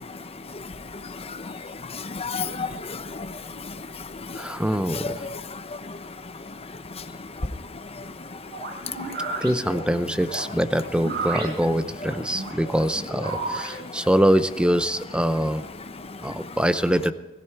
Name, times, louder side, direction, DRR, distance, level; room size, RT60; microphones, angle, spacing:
voice 1, 0.0-9.3 13.3-14.1 15.8-16.5, left 4 dB, 30° left, 10 dB, 0.8 m, -36 dB
voice 2, 4.4-5.2 9.4-15.6 16.2-17.1, equal, 5° right, 12 dB, 0.6 m, -24 dB
sound 1, 8.5-13.8, right 3 dB, 55° right, 5.2 m, -33 dB
20.0 x 14.5 x 4.6 m, 1.2 s
head